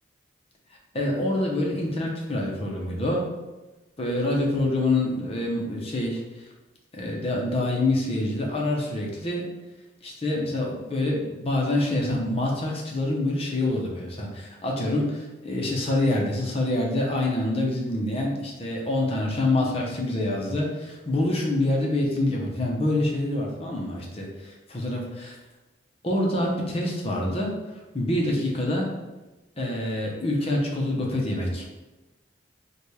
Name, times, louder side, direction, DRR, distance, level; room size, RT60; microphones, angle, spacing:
voice 1, 0.9-3.2 4.0-6.2 6.9-9.5 10.0-24.2 24.7-25.3 26.0-27.5 27.9-28.9 29.6-31.6, left 1 dB, 35° left, -1 dB, 0.7 m, -26 dB
4.0 x 2.3 x 3.2 m, 1.1 s
head